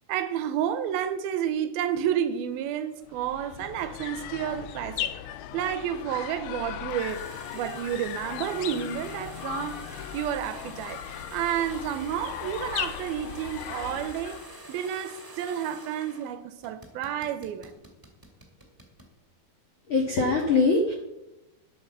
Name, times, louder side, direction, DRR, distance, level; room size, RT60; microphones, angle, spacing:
voice 1, 0.1-5.1 5.5-7.3 7.5-9.8 10.1-11.0 11.3-14.4 14.7-17.8, right 9 dB, 80° right, 2.5 m, -30 dB
sound 1, 3.1-14.6, left 11 dB, 85° left, 2.5 m, -37 dB
sound 2, 6.9-16.3 16.6-19.1, right 2 dB, 10° right, 1.6 m, -47 dB
voice 2, 19.9-20.9, left 3 dB, 55° left, 1.5 m, -22 dB
10.5 x 8.7 x 7.1 m
omnidirectional pair, 4.5 m